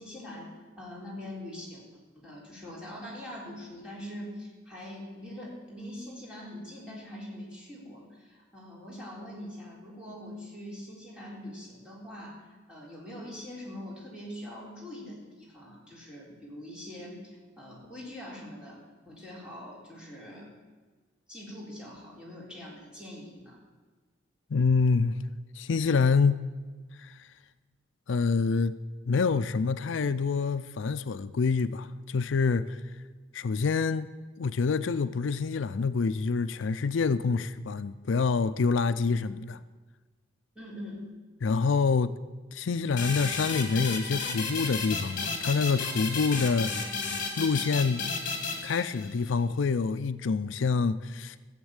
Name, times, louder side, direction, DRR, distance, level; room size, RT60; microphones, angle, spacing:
voice 1, 0.0-1.8 2.1-20.5 21.3-23.6 40.6-41.1, left 1 dB, 5° right, 3.9 m, -43 dB
voice 2, 24.5-25.2 25.5-26.4 27.0-27.3 28.1-28.8 29.1-32.8 33.3-39.6 41.4-42.1 42.5-46.7 47.4-48.1 48.6-51.4, left 4 dB, 80° left, 0.5 m, -27 dB
sound 1, 43.0-49.3, left 4 dB, 45° left, 2.1 m, -33 dB
14.5 x 7.3 x 8.8 m
head